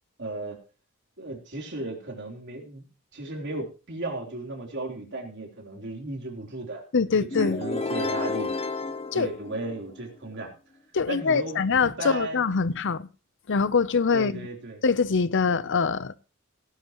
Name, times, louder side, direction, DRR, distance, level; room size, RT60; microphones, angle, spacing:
voice 1, 0.2-0.6 1.2-2.8 3.1-6.8 7.2-8.5 9.1-10.5 11.1-12.7 14.1-14.8, right 2 dB, 55° right, 3.6 m, -35 dB
voice 2, 6.9-7.6 9.1-9.3 10.9-13.1 13.5-14.4 14.8-16.2, left 5 dB, 60° left, 0.7 m, -24 dB
sound 1, 7.3-10.1, left 3 dB, 30° left, 0.9 m, -31 dB
17.5 x 11.0 x 3.0 m
head